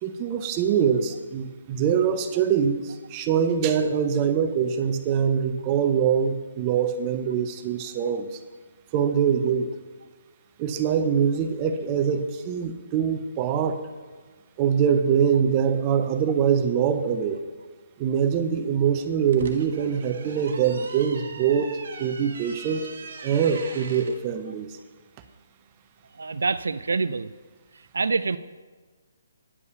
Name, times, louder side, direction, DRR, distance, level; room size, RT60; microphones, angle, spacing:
voice 1, 0.0-8.4 8.9-9.7 10.6-13.8 14.6-17.4 18.0-22.8 23.2-24.7, right 7 dB, 25° right, 9 dB, 0.7 m, -24 dB
sound 1, 19.1-24.2, right 4 dB, 60° right, 1.2 m, -41 dB
voice 2, 26.2-27.3 27.9-28.4, right 4 dB, 85° right, 14 dB, 0.3 m, -25 dB
9.7 x 5.4 x 6.9 m, 1.4 s
hypercardioid pair, 155°, 0 cm